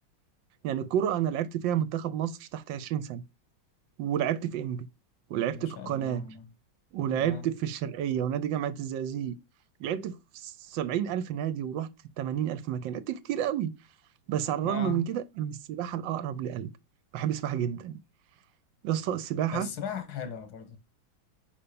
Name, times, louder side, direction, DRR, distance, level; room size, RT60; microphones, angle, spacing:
voice 1, 0.6-3.2 4.0-4.9 5.3-6.2 6.9-9.4 9.8-11.9 12.2-13.7 14.3-16.7 17.1-18.0 18.8-19.7, right 10 dB, 75° right, 1.4 m, -30 dB
voice 2, 5.5-6.5 7.1-7.5 14.6-15.0 19.5-20.8, left 7 dB, 75° left, 2.0 m, -38 dB
5.6 x 5.5 x 6.8 m
omnidirectional pair, 2.2 m